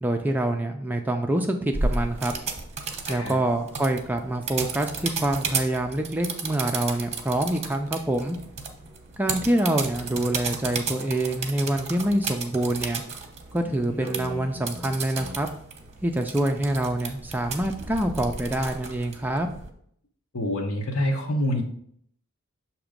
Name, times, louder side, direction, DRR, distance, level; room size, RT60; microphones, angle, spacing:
voice 1, 0.0-2.3 3.1-8.4 9.2-13.0 13.5-15.5 16.0-19.5, right 1 dB, 10° right, 4 dB, 0.4 m, -26 dB
sound 1, 1.7-19.7, right 4 dB, 30° right, 0.9 m, -34 dB
voice 2, 20.3-21.6, left 1 dB, 70° left, 0 dB, 1.0 m, -26 dB
7.1 x 2.9 x 5.0 m, 0.65 s
head